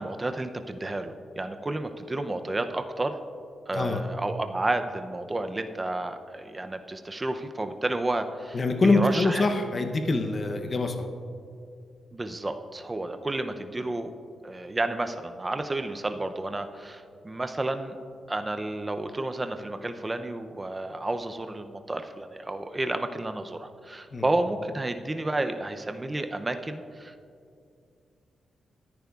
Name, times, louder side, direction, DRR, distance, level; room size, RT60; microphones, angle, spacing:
voice 1, 0.0-3.2 3.7-9.6 12.1-14.1 14.4-18.0 18.3-27.1, right 2 dB, 15° right, 8 dB, 0.5 m, -31 dB
voice 2, 8.5-11.0 24.1-24.2, left 3 dB, 30° left, 5 dB, 0.7 m, -24 dB
20.0 x 10.5 x 2.4 m, 2.4 s
wide cardioid pair, 165°, 0 cm